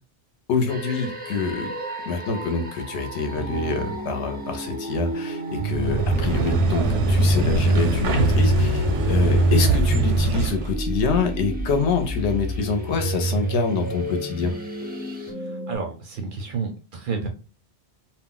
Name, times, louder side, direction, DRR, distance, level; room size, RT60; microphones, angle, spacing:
voice 1, 0.5-1.7 2.1-14.5, left 4 dB, 75° left, 5 dB, 0.9 m, -26 dB
sound 1, 0.7-15.3, right 1 dB, 15° right, 0.3 m, -40 dB
sound 2, 3.3-15.8, right 1 dB, 30° left, 0.8 m, -30 dB
sound 3, 5.6-10.7, right 2 dB, 85° right, 0.9 m, -21 dB
voice 2, 15.4-17.3, right 5 dB, 60° right, 3 dB, 0.6 m, -31 dB
2.4 x 2.1 x 3.7 m, 0.33 s
omnidirectional pair, 1.2 m